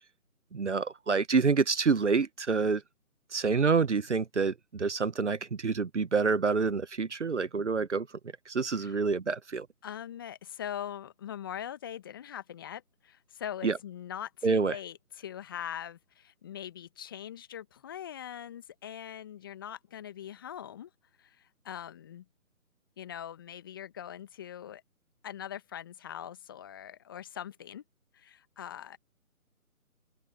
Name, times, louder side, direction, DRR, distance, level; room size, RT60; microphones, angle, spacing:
voice 1, 0.5-2.8 3.3-8.1 8.5-9.7 13.6-13.8 14.4-14.8, right 5 dB, 55° right, 1.1 m, -27 dB
voice 2, 9.8-20.9 21.2-22.2 23.0-24.8 25.2-27.8 28.1-29.0, left 10 dB, 15° left, 1.4 m, -42 dB
figure-of-eight pair, 155°, 43 cm